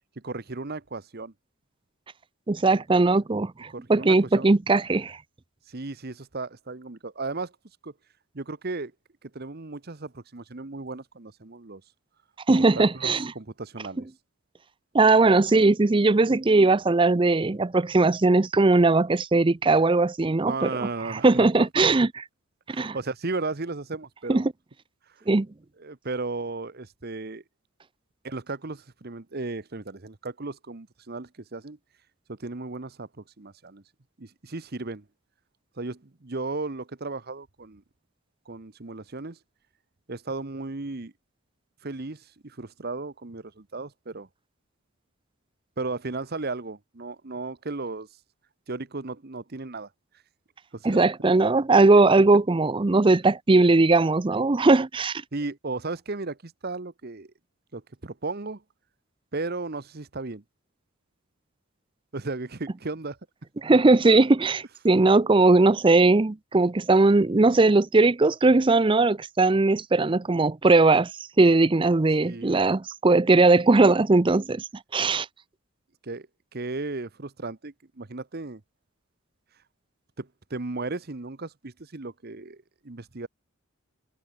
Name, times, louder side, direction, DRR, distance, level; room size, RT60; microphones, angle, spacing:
voice 1, 0.2-1.3 2.7-2.8 3.7-4.5 5.7-7.5 7.8-7.9 8.3-8.9 9.2-11.8 12.7-14.1 20.4-21.7 22.7-24.4 25.8-27.4 28.2-31.8 32.3-33.8 34.2-35.0 35.8-37.8 38.5-39.4 40.1-41.1 41.8-44.3 45.8-48.1 48.7-49.9 50.7-51.0 55.3-57.3 57.7-58.6 59.3-60.4 62.1-63.2 72.2-72.6 76.0-76.3 76.5-78.6 80.2-83.3, right 3 dB, 45° right, 1.0 m, -35 dB
voice 2, 2.5-5.2 12.5-13.3 14.9-20.7 21.1-22.1 22.7-23.0 24.3-24.5 25.3-25.5 50.8-55.2 63.6-71.1 71.4-75.3, right 3 dB, 20° right, 0.5 m, -19 dB
head